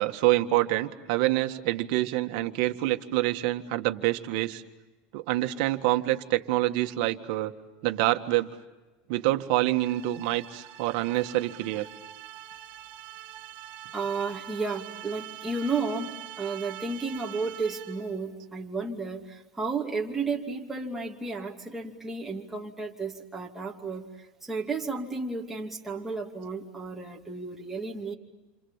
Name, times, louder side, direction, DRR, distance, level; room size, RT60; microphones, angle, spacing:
voice 1, 0.0-4.6 5.1-7.5 7.8-8.5 9.1-11.9, right 16 dB, 60° right, 6 dB, 1.8 m, -26 dB
sound 1, 9.7-18.2, right 12 dB, 45° right, 2.6 m, -44 dB
voice 2, 13.9-28.1, right 4 dB, 5° right, -1 dB, 2.7 m, -33 dB
29.0 x 27.0 x 7.3 m, 1.1 s
supercardioid pair, 165°, 4 cm